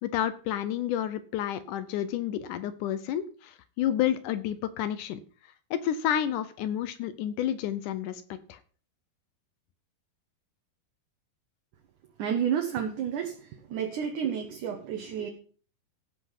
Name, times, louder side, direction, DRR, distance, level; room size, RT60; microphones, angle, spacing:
voice 1, 0.0-5.2 5.7-8.6, left 10 dB, 80° left, 12 dB, 1.9 m, -30 dB
voice 2, 12.2-15.3, right 8 dB, 65° right, 3 dB, 2.4 m, -31 dB
16.0 x 5.6 x 5.7 m, 0.42 s
omnidirectional pair, 4.4 m